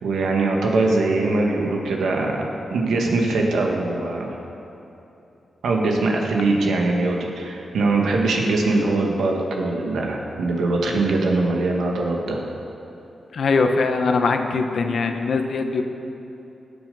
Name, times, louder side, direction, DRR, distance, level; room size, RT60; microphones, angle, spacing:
voice 1, 0.0-2.4 2.7-4.4 5.6-12.4, right 2 dB, 85° right, 0 dB, 1.8 m, -22 dB
voice 2, 13.3-15.8, left 4 dB, 65° left, 6 dB, 1.0 m, -21 dB
19.5 x 7.1 x 5.6 m, 2.9 s
cardioid pair, 80°, 0 cm